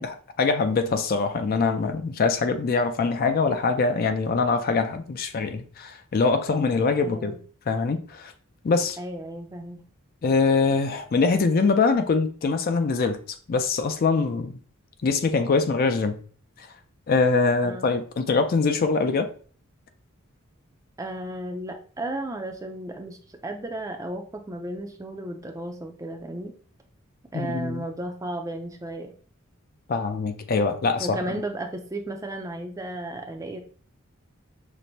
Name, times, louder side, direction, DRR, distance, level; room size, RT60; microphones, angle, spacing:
voice 1, 0.0-7.4 7.7-8.3 8.6-9.0 10.2-13.2 13.5-14.6 15.0-16.2 16.6-16.7 17.1-19.3 27.3-27.8 29.9-31.2, left 4 dB, 45° left, 0.4 m, -23 dB
voice 2, 7.0-7.4 9.0-9.8 17.6-17.9 21.0-23.2 23.4-26.5 27.3-29.1 31.0-33.6, right 1 dB, 15° right, 0.4 m, -34 dB
6.0 x 2.0 x 2.6 m
head